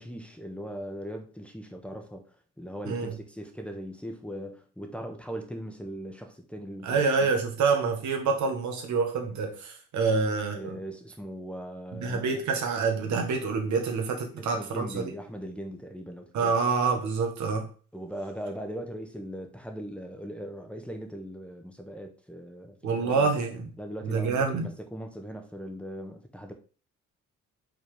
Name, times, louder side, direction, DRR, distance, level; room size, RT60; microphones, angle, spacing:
voice 1, 0.0-7.3 10.1-10.2 10.5-12.3 14.4-16.5 17.9-23.3 23.8-26.5, equal, 5° left, 1.2 m, -39 dB
voice 2, 2.8-3.1 6.8-10.8 12.0-15.0 16.3-17.7 22.8-23.7 24.0-24.7, right 4 dB, 70° right, 1.6 m, -27 dB
5.6 x 3.8 x 5.1 m
cardioid pair, 90°, 30 cm